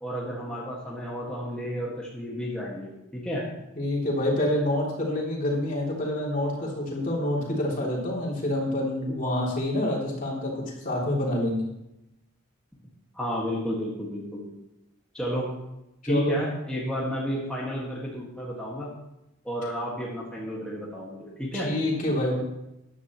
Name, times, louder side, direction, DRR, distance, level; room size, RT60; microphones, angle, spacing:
voice 1, 0.0-3.4 13.1-14.4 15.1-15.5 16.1-18.9 19.4-21.7, equal, 5° left, -6 dB, 2.0 m, -32 dB
voice 2, 3.8-11.7 16.0-16.4 21.5-22.4, left 1 dB, 40° left, -3 dB, 3.3 m, -27 dB
14.5 x 10.5 x 3.2 m, 0.89 s
head